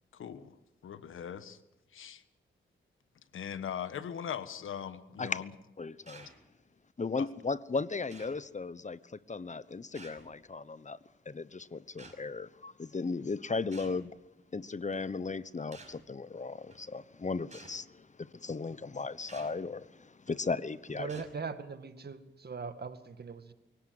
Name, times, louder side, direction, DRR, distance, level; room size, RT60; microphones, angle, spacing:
voice 1, 0.1-0.6 0.8-1.6 1.9-2.2 3.3-5.5 7.2-7.3, left 8 dB, 85° left, 1.4 m, -40 dB
voice 2, 5.8-6.3 7.0-11.0 11.3-14.1 14.5-21.1, left 4 dB, 35° left, 1.0 m, -36 dB
sound 1, 6.1-6.4 7.3-7.4 8.1-8.4 9.9-10.4 12.0-12.2 13.7-14.0 14.9-15.1 15.7-16.0 16.7-16.8 17.5-17.8 19.3-19.6 20.3-20.5 21.1-21.4, right 3 dB, 35° right, 5.6 m, -52 dB
voice 3, 20.9-23.5, right 5 dB, 55° right, 2.0 m, -40 dB
23.5 x 17.0 x 7.9 m
cardioid pair, 55°, 20 cm